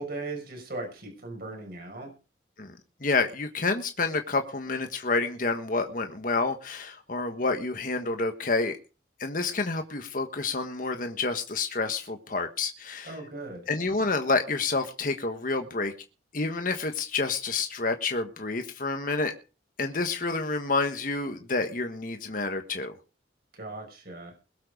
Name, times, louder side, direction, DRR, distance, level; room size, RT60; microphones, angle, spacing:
voice 1, 0.0-2.1 13.0-13.7 23.5-24.3, right 2 dB, 55° right, 2 dB, 5.9 m, -38 dB
voice 2, 2.6-8.8 9.2-13.1 13.7-15.9 16.3-19.3 19.8-22.9, left 3 dB, 50° left, 6 dB, 1.4 m, -29 dB
21.5 x 7.7 x 5.1 m, 0.34 s
head